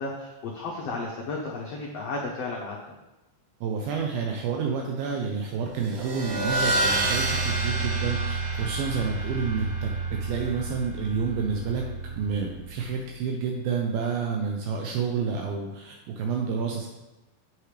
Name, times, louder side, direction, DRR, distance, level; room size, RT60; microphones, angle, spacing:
voice 1, 0.0-2.8, left 3 dB, 85° left, -3 dB, 1.3 m, -33 dB
voice 2, 3.6-11.9 12.1-16.9, right 5 dB, 80° right, 1 dB, 2.5 m, -29 dB
sound 1, 5.7-12.8, right 2 dB, 55° right, 2.0 m, -29 dB
8.3 x 7.7 x 3.3 m, 1.0 s
omnidirectional pair, 4.3 m